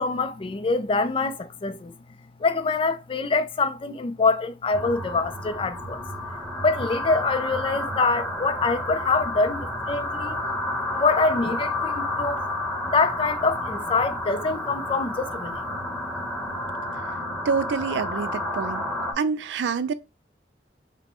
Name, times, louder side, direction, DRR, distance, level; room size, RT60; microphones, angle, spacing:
voice 1, 0.0-1.9 2.4-6.0 6.6-10.4 10.9-12.4 12.8-15.6, left 3 dB, 30° left, 0.3 m, -25 dB
sound 1, 4.7-19.1, left 1 dB, 5° left, 0.9 m, -30 dB
voice 2, 17.4-18.9 19.2-19.9, right 5 dB, 80° right, 0.4 m, -26 dB
5.1 x 2.1 x 2.9 m
head